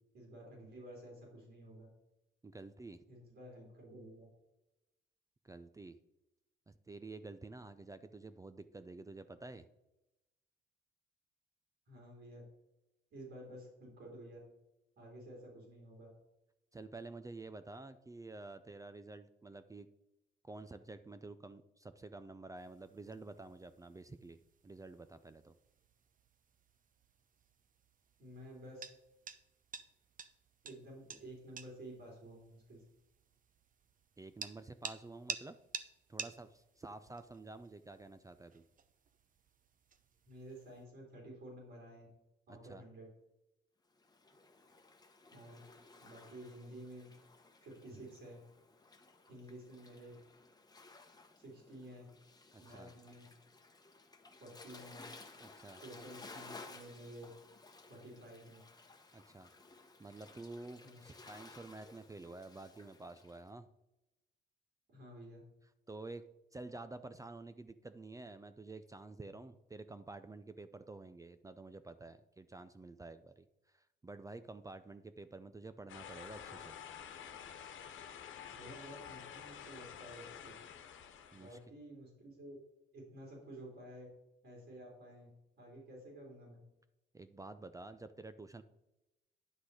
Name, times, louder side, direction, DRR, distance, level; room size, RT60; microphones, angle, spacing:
voice 1, 0.1-1.9 3.1-4.3 11.9-12.4 13.1-14.4 15.0-16.1 28.2-28.9 30.6-32.8 40.3-42.1 42.5-43.1 45.3-45.6 46.0-47.1 47.6-48.4 49.3-50.1 51.4-52.1 52.6-53.3 54.4-55.0 55.7-57.3 57.8-58.6 60.8-61.0 64.9-65.4 78.5-80.5 81.3-82.6 82.9-84.1 84.4-85.3 85.6-86.6, right 1 dB, 65° right, -2 dB, 3.6 m, -52 dB
voice 2, 2.4-3.0 5.4-6.0 6.7-9.7 16.7-19.9 20.4-25.5 34.2-35.6 36.1-38.6 42.5-42.8 52.5-52.9 55.4-55.8 59.1-59.5 60.0-63.7 65.9-66.2 66.5-73.5 73.7-76.8 81.3-81.6 87.1-88.6, right 3 dB, 15° right, 12 dB, 0.5 m, -50 dB
sound 1, 22.6-40.8, right 6 dB, 45° right, 0.8 m, -52 dB
Waves surf, 44.0-63.4, left 3 dB, 20° left, 1.2 m, -57 dB
sound 2, 75.9-81.6, left 8 dB, 75° left, 1.2 m, -50 dB
10.0 x 6.0 x 4.9 m, 0.92 s
cardioid pair, 90°, 20 cm